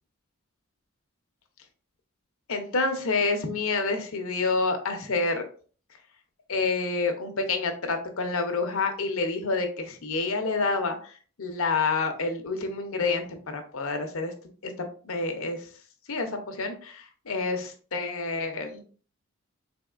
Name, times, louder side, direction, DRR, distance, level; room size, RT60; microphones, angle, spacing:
voice 1, 2.5-5.4 6.5-14.3 14.6-15.7 16.1-18.8, left 3 dB, 70° left, 6 dB, 0.7 m, -28 dB
3.7 x 3.5 x 2.4 m, 0.42 s
head